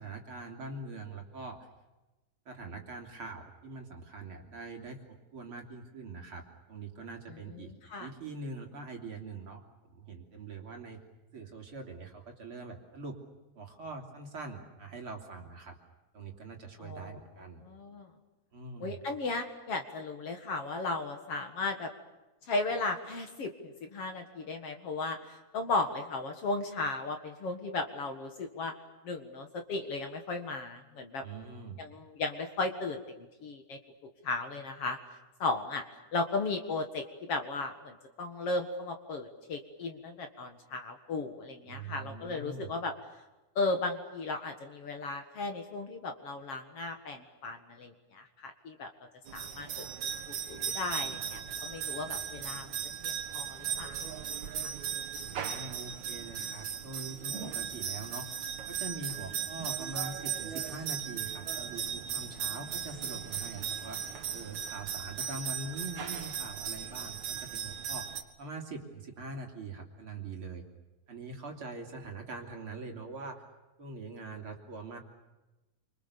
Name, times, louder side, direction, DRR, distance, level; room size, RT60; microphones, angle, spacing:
voice 1, 0.0-1.6 2.5-7.7 8.0-9.6 9.9-11.0 11.3-13.2 13.6-15.8 16.1-17.6 18.5-19.0 31.2-31.8 41.7-42.7 55.2-58.3 58.7-64.0 64.3-70.6 71.1-73.4 73.8-75.0, right 3 dB, 45° right, 2 dB, 3.8 m, -43 dB
voice 2, 7.5-8.1 16.8-17.2 17.6-18.1 18.8-21.9 22.5-28.7 29.0-31.2 31.8-33.8 34.2-35.0 35.4-35.8 36.1-42.9 43.6-48.9 49.3-52.7 53.0-54.0 54.6-54.7, left 3 dB, 55° left, 5 dB, 2.6 m, -36 dB
sound 1, 49.3-68.2, right 8 dB, 65° right, 3.0 m, -37 dB
29.0 x 25.5 x 7.0 m, 1.1 s
omnidirectional pair, 3.5 m